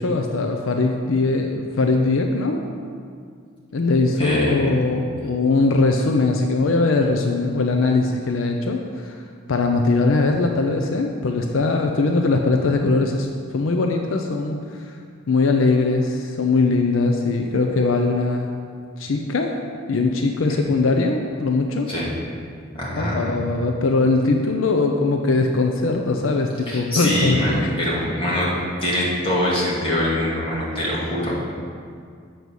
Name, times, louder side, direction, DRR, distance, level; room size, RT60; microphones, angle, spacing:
voice 1, 0.0-2.6 3.7-9.2 9.5-15.0 15.3-18.5 19.0-19.6 19.9-21.9 23.0-27.7, left 3 dB, 80° left, 3 dB, 0.5 m, -21 dB
voice 2, 4.2-4.5 5.2-5.3 20.5-20.6 21.9-22.1 22.7-23.4 26.7-28.5 28.8-31.3, left 1 dB, 30° left, -7 dB, 2.2 m, -23 dB
7.8 x 5.3 x 6.2 m, 2.2 s
head